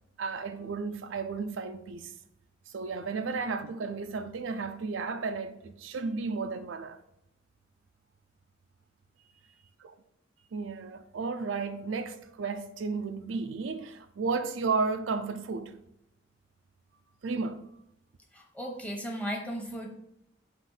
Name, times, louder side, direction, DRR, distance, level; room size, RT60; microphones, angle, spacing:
voice 1, 0.2-2.1 2.7-7.0 10.5-15.8 17.2-17.6, right 4 dB, 90° right, 0.5 m, -33 dB
voice 2, 18.3-19.9, equal, 5° left, 0.9 m, -36 dB
5.8 x 3.0 x 5.6 m
head